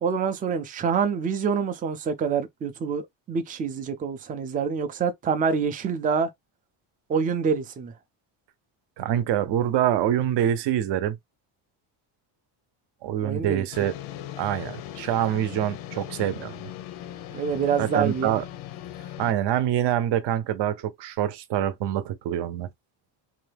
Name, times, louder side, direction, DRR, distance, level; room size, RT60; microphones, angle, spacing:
voice 1, 0.0-6.3 7.1-7.9 13.2-13.7 17.3-18.4, right 6 dB, 20° right, 0.3 m, -26 dB
voice 2, 9.0-11.2 13.0-13.9 14.4-16.5 17.8-18.4 19.2-22.7, right 11 dB, 60° right, 0.7 m, -25 dB
sound 1, 13.7-19.3, left 12 dB, 85° left, 0.7 m, -39 dB
2.7 x 2.2 x 3.3 m
cardioid pair, 145°, 48 cm